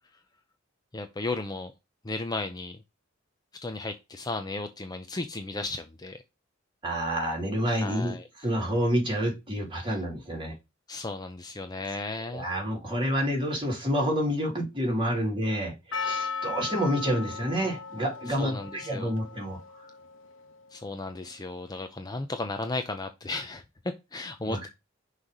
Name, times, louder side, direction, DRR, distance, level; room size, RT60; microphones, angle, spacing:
voice 1, 0.9-1.7 2.0-2.8 3.6-6.2 7.7-8.2 9.8-10.0 10.9-12.5 18.3-19.1 20.7-23.6 24.1-24.7, left 3 dB, 20° left, 0.6 m, -35 dB
voice 2, 6.8-8.1 8.4-10.5 12.3-19.6 24.4-24.7, equal, 25° right, 3.2 m, -28 dB
Percussion, 15.9-20.9, left 5 dB, 75° left, 1.2 m, -37 dB
6.1 x 3.3 x 5.3 m
head